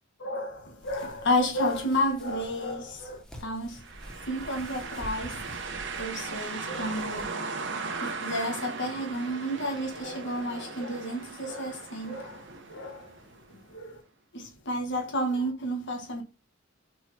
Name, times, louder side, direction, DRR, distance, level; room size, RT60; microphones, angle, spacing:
voice 1, 0.2-3.8 4.2-5.4 6.0-7.4 8.0-13.2 13.7-14.0 14.3-16.2, equal, 65° left, 1.6 m, -31 dB
sound 1, 0.8-7.3, equal, 5° left, 1.2 m, -47 dB
sound 2, 3.8-13.6, right 4 dB, 60° right, 1.0 m, -38 dB
4.8 x 4.7 x 4.2 m
head